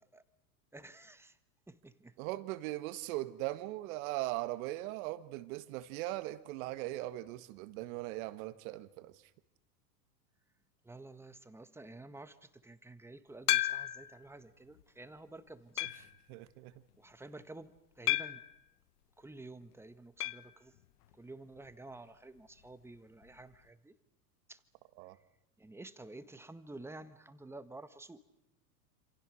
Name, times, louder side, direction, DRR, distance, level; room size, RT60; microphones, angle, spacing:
voice 1, 0.7-1.4 1.7-2.2 10.8-16.1 17.0-18.4 19.2-20.7 21.1-24.0 24.5-24.6 25.6-28.2, right 2 dB, 5° right, 12 dB, 1.4 m, -51 dB
voice 2, 2.2-9.1 16.3-16.7 25.0-25.2, right 17 dB, 55° right, 12 dB, 1.8 m, -39 dB
sound 1, 13.5-14.2 14.8-14.9 15.8-16.2 18.1-18.6 20.2-20.5 20.8-20.9 21.1-21.2 23.2-23.3, left 16 dB, 70° left, 1.2 m, -32 dB
27.5 x 27.5 x 6.5 m, 0.87 s
hypercardioid pair, 115°, 48 cm